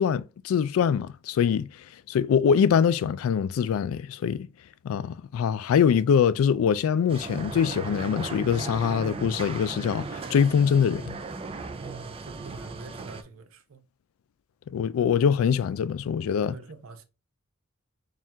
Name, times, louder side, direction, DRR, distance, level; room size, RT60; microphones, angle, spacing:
voice 1, 0.0-4.5 4.8-11.2 14.7-16.6, left 7 dB, 85° left, 0.3 m, -24 dB
sound 1, 7.1-13.2, right 4 dB, 25° right, 0.4 m, -37 dB
voice 2, 11.8-13.8 16.4-17.0, right 5 dB, 80° right, 0.5 m, -45 dB
4.4 x 2.4 x 3.4 m
head